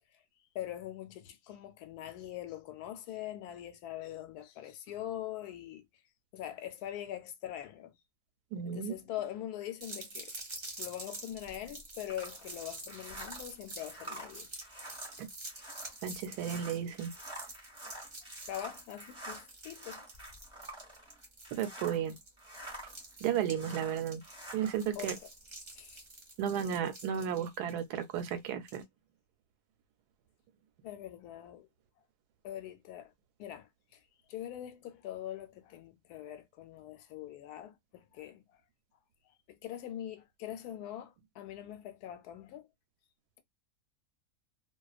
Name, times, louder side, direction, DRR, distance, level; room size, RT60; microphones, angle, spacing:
voice 1, 0.5-5.9 6.3-8.0 8.7-10.3 10.8-14.5 18.5-20.0 24.9-25.3 25.8-26.0 30.8-31.7 32.4-33.1 33.4-34.0 34.3-38.4 39.5-42.7, left 12 dB, 80° left, 1.1 m, -43 dB
voice 2, 8.5-8.9 15.2-15.3 16.0-17.1 21.5-22.2 23.2-24.2 24.5-25.2 26.4-28.8, right 9 dB, 85° right, 1.1 m, -33 dB
sound 1, 9.8-28.8, right 2 dB, 35° right, 0.7 m, -48 dB
sound 2, 12.1-22.1 22.4-25.2, right 1 dB, 5° right, 1.0 m, -48 dB
2.4 x 2.2 x 2.3 m
omnidirectional pair, 1.7 m